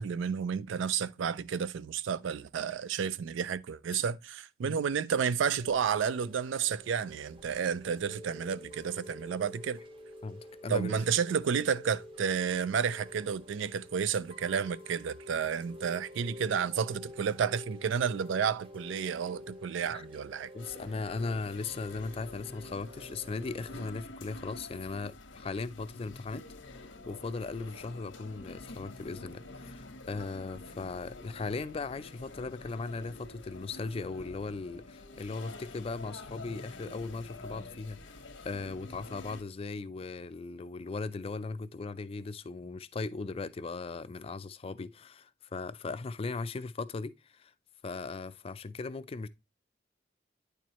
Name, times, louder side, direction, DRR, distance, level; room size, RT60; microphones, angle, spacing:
voice 1, 0.0-9.8 10.7-20.5, right 7 dB, 75° right, 0.4 m, -31 dB
Chime / Rain, 5.4-23.8, left 1 dB, 25° right, 0.8 m, -49 dB
voice 2, 10.2-11.0 19.9-20.0 20.5-47.5 47.8-49.3, left 3 dB, 30° left, 0.3 m, -38 dB
sound 1, 20.6-39.4, left 2 dB, 85° left, 1.2 m, -48 dB
9.3 x 4.5 x 2.9 m
head